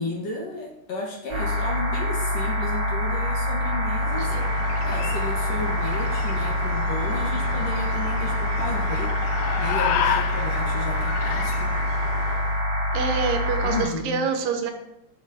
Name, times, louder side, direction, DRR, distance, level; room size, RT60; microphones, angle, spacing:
voice 1, 0.0-4.3 4.8-9.1 9.6-11.7 13.6-14.3, left 3 dB, 60° left, -2 dB, 2.0 m, -33 dB
sound 1, 1.3-13.8, left 1 dB, 45° right, 2.8 m, -25 dB
sound 2, 3.9-12.6, left 8 dB, 85° left, 1.6 m, -32 dB
voice 2, 12.9-14.7, right 6 dB, 80° right, 5 dB, 2.5 m, -26 dB
11.0 x 6.9 x 2.6 m, 0.83 s
omnidirectional pair, 4.0 m